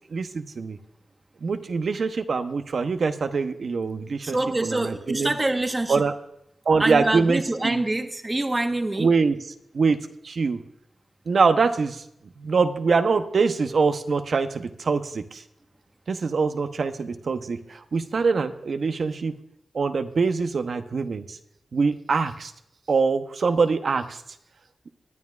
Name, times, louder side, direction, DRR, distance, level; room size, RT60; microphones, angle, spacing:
voice 1, 0.1-0.8 1.4-5.3 5.9-6.1 6.7-7.8 9.0-9.4 9.7-10.0 10.2-10.6 11.3-12.0 12.4-15.4 16.1-19.3 19.7-21.4 21.7-22.5 22.9-24.2, right 4 dB, 70° right, 9 dB, 0.8 m, -24 dB
voice 2, 4.2-6.0 6.8-9.1, right 2 dB, 30° right, 6 dB, 1.2 m, -25 dB
20.0 x 9.5 x 2.4 m, 0.79 s
cardioid pair, 50°, 0 cm